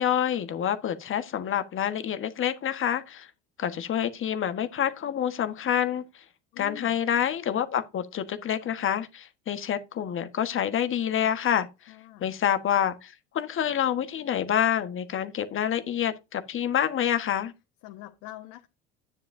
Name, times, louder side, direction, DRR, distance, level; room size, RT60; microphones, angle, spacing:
voice 1, 0.0-3.3 3.6-6.2 6.6-11.7 12.2-17.5, left 9 dB, 40° left, 1.4 m, -27 dB
voice 2, 6.5-6.9 11.9-12.3 17.8-18.7, left 15 dB, 70° left, 1.5 m, -44 dB
10.5 x 9.9 x 2.7 m
hypercardioid pair, 80°, 31 cm